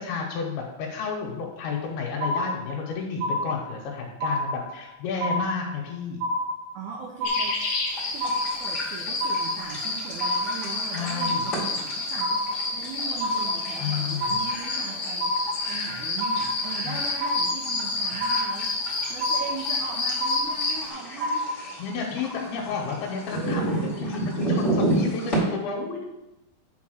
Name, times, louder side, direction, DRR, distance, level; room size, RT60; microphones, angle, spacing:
voice 1, 0.0-6.2 10.9-11.4 13.8-14.4 16.9-17.0 21.8-26.1, left 5 dB, 85° left, -1 dB, 2.9 m, -31 dB
sound 1, 2.2-2.9 3.2-3.9 4.2-4.9 5.2-5.9 6.2-6.9 7.2-7.9 8.2-8.9 9.2-9.9 10.2-10.9 11.2-11.9 12.2-12.9 13.2-13.9 14.2-14.9 15.2-15.9 16.2-16.9 17.2-17.9 18.2-18.9 19.2-19.9 20.2-20.9 21.2-21.9, left 1 dB, 65° right, 2.3 m, -28 dB
voice 2, 6.7-7.7 8.1-12.4 12.7-15.4 15.7-21.4, right 6 dB, 85° right, -1 dB, 1.7 m, -39 dB
sound 2, 7.2-20.9, left 3 dB, 50° left, 1.4 m, -30 dB
sound 3, 7.9-25.4, right 1 dB, 20° left, 2.4 m, -33 dB
6.9 x 4.2 x 6.3 m, 1.0 s
omnidirectional pair, 4.4 m